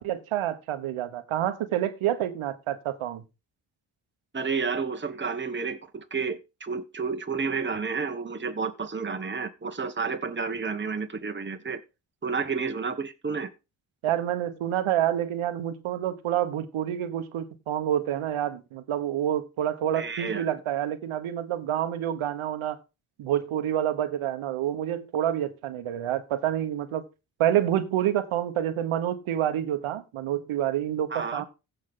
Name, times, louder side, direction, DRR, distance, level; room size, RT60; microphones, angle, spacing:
voice 1, 0.0-3.2 14.0-22.8 23.2-27.0 27.4-31.4, right 11 dB, 85° right, 1.2 m, -28 dB
voice 2, 4.3-11.8 12.2-13.5 19.9-20.5 31.1-31.4, right 5 dB, 25° right, 1.4 m, -31 dB
15.5 x 5.6 x 3.8 m
supercardioid pair, 45°, 48 cm